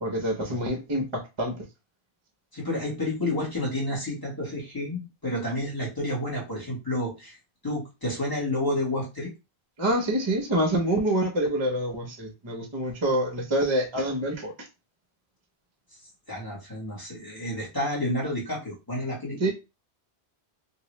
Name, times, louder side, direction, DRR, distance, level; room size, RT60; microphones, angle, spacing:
voice 1, 0.0-1.6 9.8-14.5 19.4-19.5, right 1 dB, 30° right, 2 dB, 0.6 m, -26 dB
voice 2, 2.5-7.4 7.6-9.3 16.3-19.5, left 1 dB, 20° left, -5 dB, 1.6 m, -30 dB
3.0 x 2.7 x 3.0 m, 0.27 s
omnidirectional pair, 1.1 m